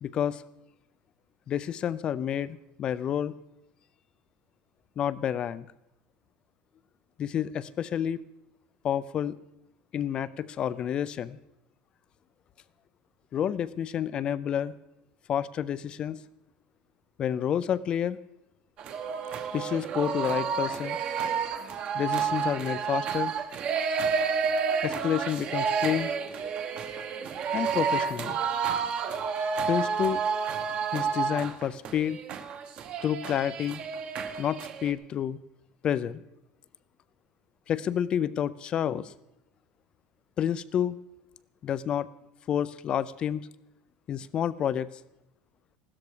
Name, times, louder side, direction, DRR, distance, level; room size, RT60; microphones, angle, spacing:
voice 1, 0.0-0.4 1.5-3.3 5.0-5.7 7.2-8.2 8.8-9.4 9.9-11.4 13.3-14.7 15.3-16.2 17.2-18.2 19.5-21.0 21.9-23.3 24.8-26.1 27.5-28.4 29.7-30.2 30.9-32.2 33.0-33.8 34.4-35.4 35.8-36.2 37.7-39.1 40.4-41.0 41.6-42.1 42.5-43.5 44.1-44.9, left 9 dB, 25° left, 17 dB, 0.4 m, -29 dB
sound 1, 18.8-34.9, right 6 dB, 30° right, 1.0 m, -30 dB
16.0 x 13.0 x 4.9 m, 0.90 s
cardioid pair, 180°, 4 cm